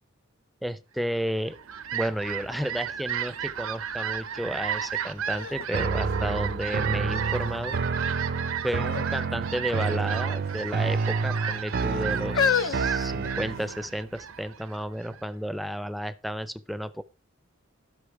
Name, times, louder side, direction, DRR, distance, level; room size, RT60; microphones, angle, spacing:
voice 1, 0.6-1.6 1.9-7.8 8.6-17.0, equal, ahead, 14 dB, 0.5 m, -32 dB
Fowl, 1.3-15.2, right 8 dB, 85° right, 0.8 m, -34 dB
sound 1, 4.8-4.9 5.3-6.8 7.4-7.9 8.8-9.1 9.4-9.6 10.4-11.1 11.8-13.8 14.6-14.7, left 6 dB, 65° left, 0.6 m, -30 dB
sound 2, 5.7-13.8, right 4 dB, 50° right, 0.5 m, -29 dB
12.0 x 6.0 x 4.7 m, 0.31 s
head